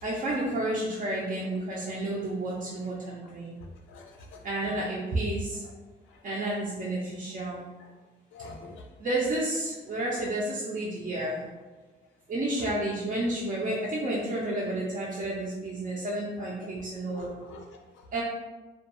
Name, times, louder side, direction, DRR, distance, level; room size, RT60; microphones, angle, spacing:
voice 1, 0.0-3.5 4.4-5.6 6.2-7.6 9.0-11.4 12.3-17.3 18.1-18.2, right 1 dB, 40° right, -6 dB, 0.5 m, -31 dB
voice 2, 3.9-4.4 6.1-6.2 8.3-8.8 10.1-10.3 17.0-17.6, left 2 dB, 75° left, 2 dB, 0.5 m, -45 dB
2.2 x 2.2 x 2.9 m, 1.2 s
cardioid pair, 90°, 20 cm